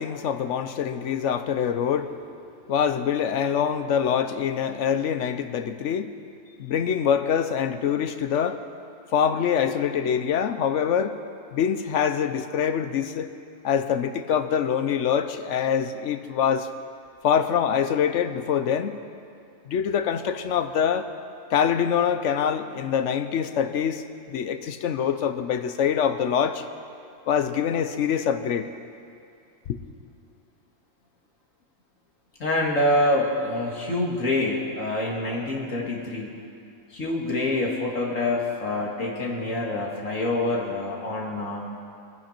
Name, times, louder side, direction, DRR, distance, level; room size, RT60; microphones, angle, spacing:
voice 1, 0.0-2.3 2.7-6.1 6.6-8.6 9.1-11.2 11.5-13.3 13.6-16.7 17.2-19.0 19.7-21.1 21.5-26.6 27.3-28.7, left 8 dB, 70° left, 10 dB, 1.0 m, -24 dB
voice 2, 32.4-36.3 36.9-41.6, left 2 dB, 90° left, -2 dB, 2.4 m, -26 dB
22.0 x 10.0 x 4.4 m, 2.5 s
omnidirectional pair, 1.3 m